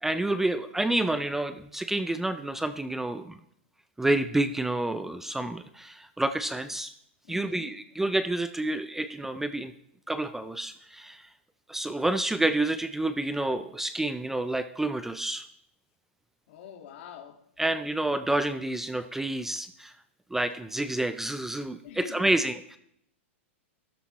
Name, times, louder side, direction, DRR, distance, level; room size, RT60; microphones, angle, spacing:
voice 1, 0.0-3.4 4.0-6.9 7.3-9.7 10.1-11.3 11.7-15.4 17.6-19.9 20.3-22.8, right 2 dB, 5° right, 0.4 m, -29 dB
voice 2, 7.3-7.7 16.5-17.4 21.8-22.4, left 9 dB, 60° left, 1.9 m, -44 dB
13.0 x 12.5 x 3.1 m
hypercardioid pair, 140°, 7 cm